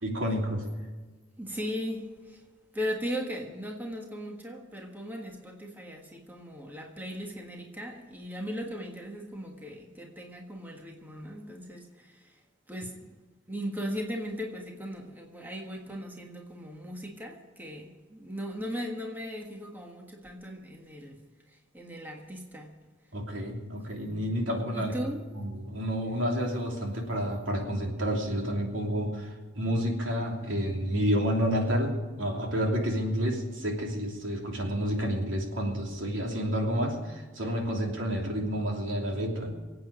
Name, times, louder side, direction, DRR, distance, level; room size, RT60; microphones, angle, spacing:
voice 1, 0.0-0.7 23.1-25.0 25.3-39.5, equal, 80° right, 1 dB, 3.0 m, -30 dB
voice 2, 1.4-2.4 2.7-12.4 12.7-13.2 13.5-22.8 24.7-25.2, equal, 10° right, 1 dB, 1.5 m, -38 dB
24.5 x 8.7 x 5.1 m, 1.4 s
head